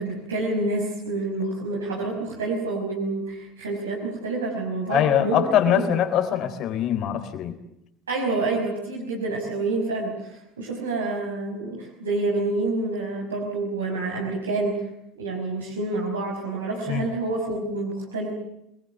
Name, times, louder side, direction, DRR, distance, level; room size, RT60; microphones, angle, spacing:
voice 1, 0.0-5.9 8.1-14.7 15.2-18.3, right 2 dB, 85° right, -2 dB, 5.5 m, -28 dB
voice 2, 4.9-7.6 16.9-17.0, left 10 dB, 50° left, 10 dB, 3.9 m, -22 dB
27.5 x 21.0 x 8.2 m, 0.81 s
hypercardioid pair, 70°, 0 cm